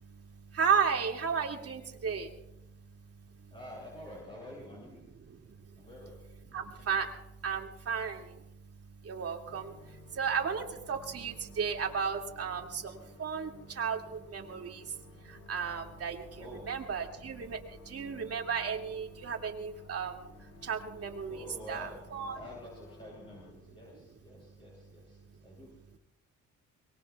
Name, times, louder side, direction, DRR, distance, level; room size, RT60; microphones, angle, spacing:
voice 1, 0.0-3.5 5.2-5.9 6.5-22.4 25.3-25.6, right 6 dB, 50° right, 2 dB, 2.5 m, -35 dB
voice 2, 3.5-5.1 5.8-6.2 16.4-16.6 21.3-21.9 22.3-25.7, left 1 dB, 15° left, -6 dB, 7.4 m, -48 dB
sound 1, 9.5-23.5, left 2 dB, 70° left, 3.9 m, -55 dB
24.0 x 21.5 x 2.4 m, 0.89 s
cardioid pair, 90°, 30 cm